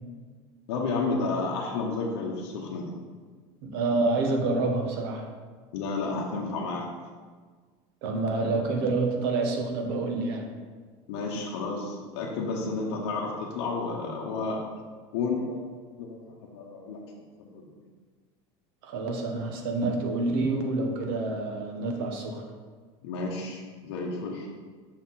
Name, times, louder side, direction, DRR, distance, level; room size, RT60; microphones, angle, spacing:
voice 1, 0.7-2.9 5.7-6.9 11.1-14.6 15.1-15.7 16.0-16.2 16.5-17.0 17.4-17.7 23.0-24.5, left 3 dB, 70° left, -2 dB, 0.9 m, -31 dB
voice 2, 3.6-5.3 8.0-10.5 18.8-22.4, right 3 dB, 60° right, 3 dB, 0.9 m, -28 dB
6.0 x 4.4 x 3.9 m, 1.5 s
cardioid pair, 180°, 14 cm